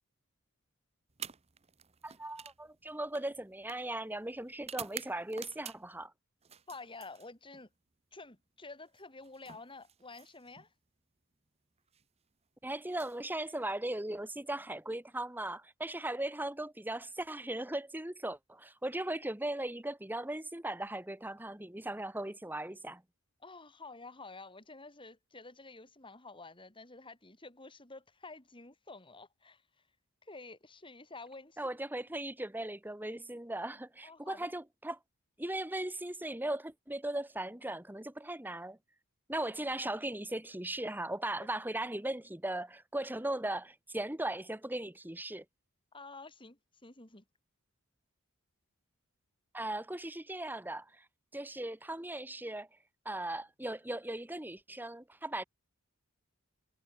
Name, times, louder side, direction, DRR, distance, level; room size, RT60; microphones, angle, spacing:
sound 1, 1.1-6.0 6.4-7.7 8.9-10.7 11.8-12.0 12.8-14.0, right 8 dB, 30° right, 1.1 m, -50 dB
voice 1, 2.0-6.1 12.6-23.0 31.6-35.0 35.4-38.8 39.3-45.4 49.5-51.0 51.3-52.7 53.0-55.4, right 1 dB, 10° right, 1.4 m, -38 dB
voice 2, 6.7-7.7 8.1-10.7 23.4-29.6 30.2-31.8 34.0-34.5 45.9-47.2, left 3 dB, 20° left, 3.2 m, -50 dB
head